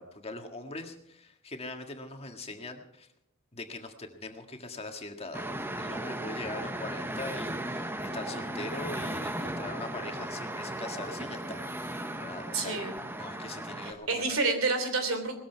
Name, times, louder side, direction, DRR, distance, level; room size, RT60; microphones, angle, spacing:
voice 1, 0.0-3.1 3.5-5.4 5.8-14.5, left 2 dB, 30° left, 4 dB, 1.8 m, -42 dB
sound 1, 5.3-13.9, right 1 dB, 10° right, 1.0 m, -36 dB
voice 2, 12.5-12.9 13.8-15.4, right 3 dB, 80° right, 8 dB, 3.2 m, -29 dB
19.0 x 14.0 x 4.6 m, 0.74 s
head